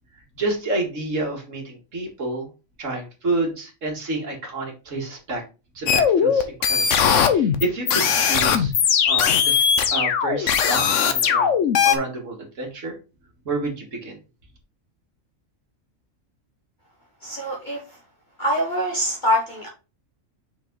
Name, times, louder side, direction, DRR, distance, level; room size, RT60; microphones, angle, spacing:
voice 1, 0.1-2.5 2.8-5.4 5.7-8.7 9.1-9.7 9.9-11.6 11.8-13.0 13.5-14.2, right 2 dB, 70° right, 1 dB, 2.3 m, -29 dB
sound 1, 5.9-12.0, left 7 dB, 65° left, 1.1 m, -19 dB
voice 2, 17.2-17.8 18.4-19.7, equal, 35° left, -2 dB, 1.6 m, -24 dB
6.0 x 5.0 x 3.9 m, 0.30 s
omnidirectional pair, 1.4 m